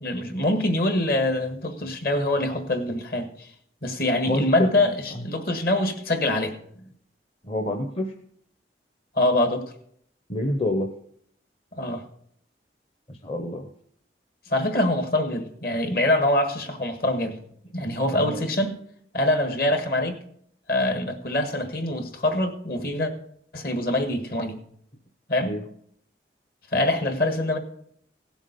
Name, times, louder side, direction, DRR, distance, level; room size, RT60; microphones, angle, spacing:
voice 1, 0.0-3.5 3.8-6.5 9.1-9.7 11.8-12.0 14.5-17.4 17.7-18.8 19.1-20.2 20.7-23.1 23.5-24.6 25.3-25.5 26.7-27.6, left 1 dB, 55° left, 1.6 m, -24 dB
voice 2, 4.2-4.7 7.5-8.1 10.3-10.9 13.2-13.7 18.1-18.4 25.4-25.6, left 1 dB, 30° left, 0.8 m, -27 dB
16.5 x 7.2 x 5.3 m
head